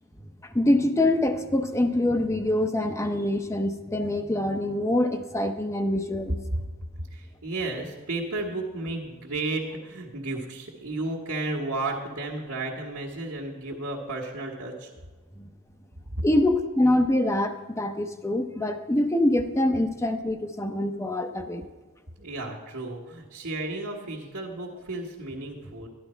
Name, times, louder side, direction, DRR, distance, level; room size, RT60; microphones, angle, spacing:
voice 1, 0.4-6.4 15.4-15.5 16.2-21.7, left 1 dB, 15° left, 7 dB, 0.6 m, -25 dB
voice 2, 7.1-14.9 16.1-16.2 22.2-25.9, right 2 dB, 65° right, -5 dB, 1.6 m, -33 dB
13.0 x 11.0 x 4.4 m, 1.3 s
head